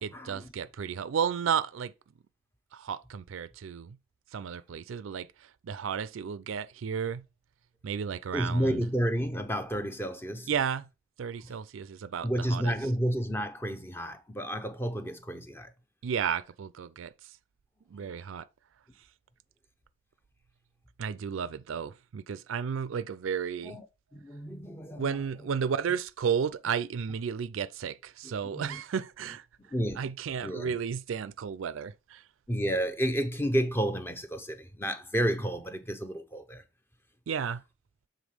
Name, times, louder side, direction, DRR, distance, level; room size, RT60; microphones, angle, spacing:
voice 1, 0.0-1.9 2.7-4.0 4.3-7.2 7.8-8.8 10.5-10.9 11.2-12.7 16.0-17.1 17.9-18.4 21.0-23.8 25.0-29.5 30.0-32.2 37.3-37.6, right 7 dB, 85° right, 0.4 m, -33 dB
voice 2, 8.3-10.5 11.4-11.5 12.2-15.7 18.0-18.1 23.6-23.8 24.1-25.2 28.2-28.8 29.7-30.0 30.4-30.7 32.5-36.6, equal, 10° left, 0.6 m, -31 dB
7.2 x 3.7 x 4.9 m
head